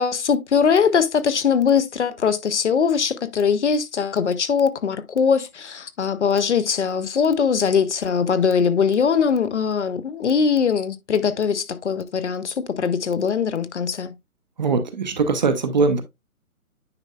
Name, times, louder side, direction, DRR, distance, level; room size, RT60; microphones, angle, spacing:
voice 1, 0.0-14.1, left 6 dB, 50° left, 0.7 m, -21 dB
voice 2, 14.6-16.0, right 4 dB, 30° right, 0.7 m, -21 dB
9.6 x 4.4 x 2.2 m
figure-of-eight pair, 145°, 44 cm